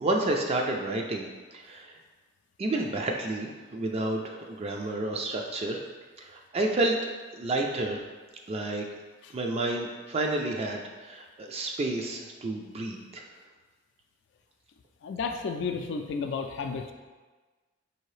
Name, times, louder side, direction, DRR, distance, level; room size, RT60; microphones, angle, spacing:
voice 1, 0.0-1.9 2.6-5.8 6.2-7.0 7.3-8.0 8.5-8.9 9.3-13.2, right 2 dB, 30° right, 1 dB, 0.3 m, -30 dB
voice 2, 15.0-16.9, left 5 dB, 65° left, 6 dB, 0.3 m, -32 dB
4.5 x 2.8 x 3.1 m, 1.3 s
head